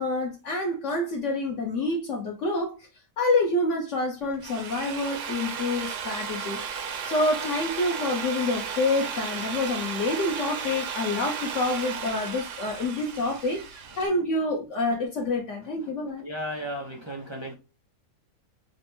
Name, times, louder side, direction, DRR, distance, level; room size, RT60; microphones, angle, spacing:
voice 1, 0.0-2.9 3.2-16.2, left 2 dB, 60° left, 0.9 m, -27 dB
Drill, 4.2-14.1, right 7 dB, 65° right, 0.9 m, -34 dB
voice 2, 16.2-17.5, equal, 35° right, 0.4 m, -34 dB
5.1 x 2.1 x 3.0 m
omnidirectional pair, 1.6 m